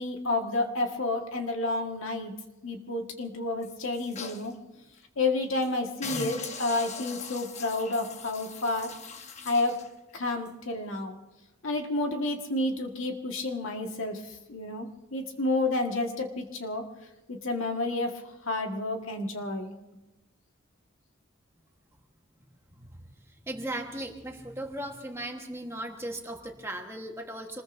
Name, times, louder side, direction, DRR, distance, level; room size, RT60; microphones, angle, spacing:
voice 1, 0.0-2.3 2.6-4.5 5.2-8.9 9.5-9.8 10.1-11.2 11.6-14.2 14.5-16.9 17.3-19.7, left 2 dB, 75° left, 3 dB, 1.7 m, -30 dB
sound 1, 3.6-4.5 5.0-5.1 5.4-5.7 6.0-9.9 10.5-10.6, left 4 dB, 35° left, 1.0 m, -40 dB
voice 2, 22.7-23.0 23.5-27.6, right 1 dB, 15° right, 3 dB, 1.3 m, -37 dB
26.0 x 20.5 x 2.7 m, 0.99 s
head